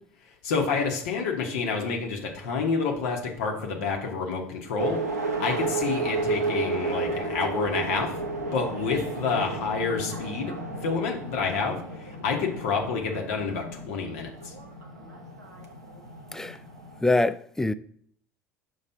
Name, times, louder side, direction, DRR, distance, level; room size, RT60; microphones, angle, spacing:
voice 1, 0.4-8.2 8.5-10.5 10.8-14.5, left 5 dB, 70° left, 1.1 m, -28 dB
sound 1, 4.8-17.0, right 3 dB, 90° right, 0.8 m, -33 dB
voice 2, 17.0-17.7, left 2 dB, 5° left, 0.3 m, -24 dB
5.6 x 3.2 x 5.6 m
hypercardioid pair, 70°, 8 cm